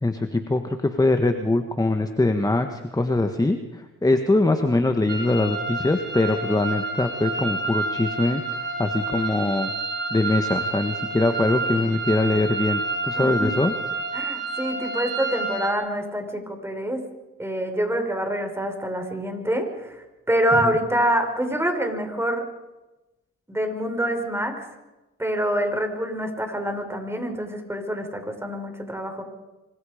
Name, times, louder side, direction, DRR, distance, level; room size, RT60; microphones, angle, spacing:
voice 1, 0.0-9.7 10.1-13.7, left 2 dB, 10° left, 7 dB, 1.7 m, -23 dB
sound 1, 5.1-15.7, right 3 dB, 35° right, 5.6 m, -29 dB
voice 2, 13.2-13.6 14.1-17.0 17.4-22.5 23.5-24.7 25.2-29.2, right 1 dB, 10° right, 5 dB, 5.4 m, -26 dB
26.0 x 26.0 x 5.2 m, 1.1 s
cardioid pair, 90°, 30 cm